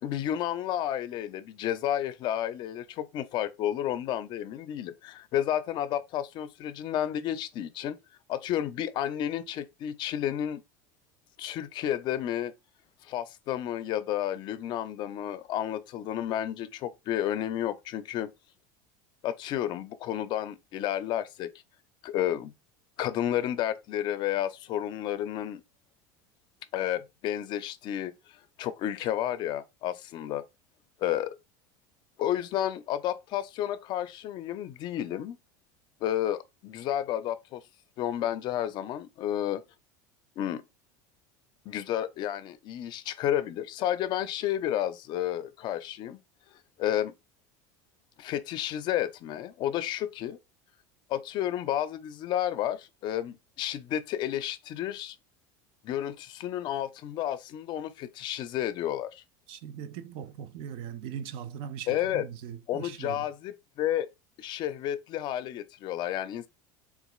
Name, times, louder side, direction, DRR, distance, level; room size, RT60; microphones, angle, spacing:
voice 1, 0.0-8.0 8.3-10.6 11.4-12.5 13.0-18.3 19.2-21.5 22.0-22.5 23.0-25.6 26.7-28.1 28.6-30.4 31.0-31.3 32.2-35.4 36.0-37.6 38.0-39.6 40.4-40.6 41.7-46.2 46.8-47.1 48.2-50.4 51.1-55.2 55.8-59.2 61.9-62.3 62.7-64.1 64.4-66.5, left 11 dB, 50° left, 0.4 m, -31 dB
voice 2, 59.5-63.2, right 8 dB, 60° right, 0.5 m, -40 dB
4.0 x 2.4 x 2.3 m
supercardioid pair, 110°, 10 cm